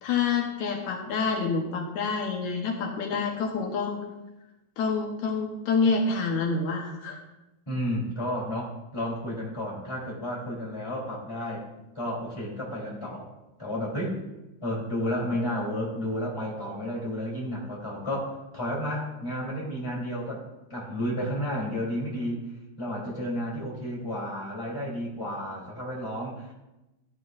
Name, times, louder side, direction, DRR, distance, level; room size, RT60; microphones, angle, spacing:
voice 1, 0.0-4.0 4.8-7.2, left 4 dB, 75° left, 1 dB, 2.5 m, -27 dB
voice 2, 7.7-11.6 11.9-13.3 13.6-14.2 14.6-20.4 20.7-22.5 22.8-26.5, equal, 10° left, -4 dB, 3.2 m, -32 dB
14.0 x 11.5 x 2.6 m, 0.98 s
omnidirectional pair, 3.4 m